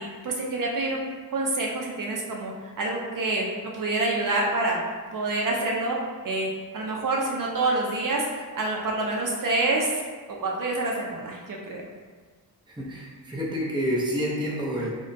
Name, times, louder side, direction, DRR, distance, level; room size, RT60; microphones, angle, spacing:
voice 1, 0.0-4.8 5.1-6.0 6.2-8.3 8.5-10.0 10.4-11.8, right 2 dB, 60° right, -2 dB, 0.5 m, -27 dB
voice 2, 12.7-14.9, equal, 10° right, -5 dB, 0.6 m, -28 dB
4.8 x 2.1 x 2.6 m, 1.5 s
wide cardioid pair, 135°, 37 cm